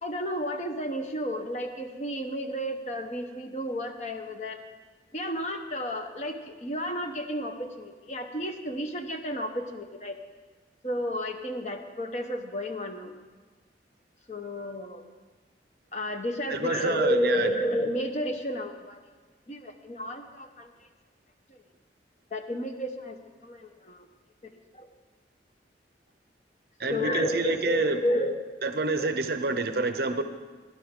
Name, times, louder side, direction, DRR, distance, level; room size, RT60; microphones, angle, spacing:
voice 1, 0.0-4.6 5.1-10.2 10.8-13.1 14.3-15.1 15.9-19.0 19.5-20.7 21.5-21.6 22.3-24.1 24.4-24.9 26.9-28.4 29.0-29.1, equal, 40° left, 6 dB, 0.9 m, -32 dB
voice 2, 16.5-17.5 26.8-28.0 28.6-30.2, right 3 dB, 55° right, 8 dB, 0.6 m, -27 dB
17.0 x 10.5 x 3.7 m, 1.4 s
head